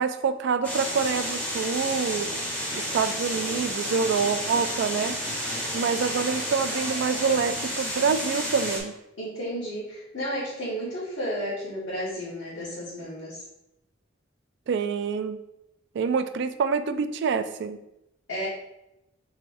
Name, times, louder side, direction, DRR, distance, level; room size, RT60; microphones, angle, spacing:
voice 1, 0.0-2.3 2.7-5.1 5.5-8.9 14.7-15.4 15.9-17.8, right 5 dB, 65° right, 10 dB, 0.3 m, -26 dB
sound 1, 0.6-8.8, equal, 10° left, 0.9 m, -31 dB
voice 2, 9.2-13.4 18.3-18.5, equal, 80° left, -9 dB, 1.2 m, -32 dB
4.8 x 3.2 x 2.6 m, 0.86 s
head